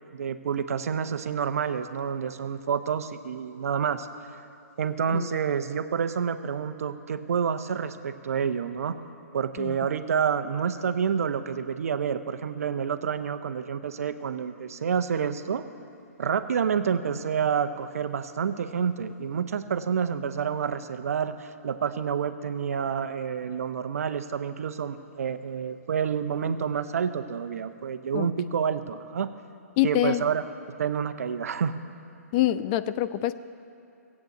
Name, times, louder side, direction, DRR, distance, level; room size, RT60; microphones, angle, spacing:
voice 1, 0.1-4.1 4.8-9.0 9.3-15.6 16.2-29.3 29.8-30.4 30.8-31.7, right 7 dB, 65° right, 10 dB, 0.8 m, -28 dB
voice 2, 29.8-30.3 32.3-33.3, left 13 dB, 30° left, 13 dB, 0.4 m, -25 dB
15.5 x 8.4 x 7.9 m, 2.6 s
hypercardioid pair, 130°, 9 cm